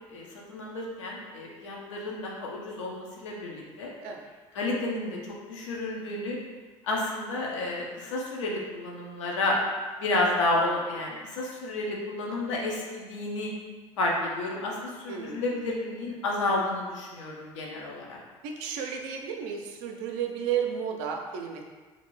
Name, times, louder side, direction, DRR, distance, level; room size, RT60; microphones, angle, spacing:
voice 1, 0.1-3.9 4.5-5.2 5.5-6.4 6.8-9.6 10.0-13.5 14.0-18.2, left 2 dB, 80° left, -2 dB, 0.6 m, -31 dB
voice 2, 15.1-15.5 18.4-21.6, right 7 dB, 70° right, 3 dB, 0.4 m, -33 dB
2.6 x 2.5 x 3.0 m, 1.4 s
hypercardioid pair, 60°, 15 cm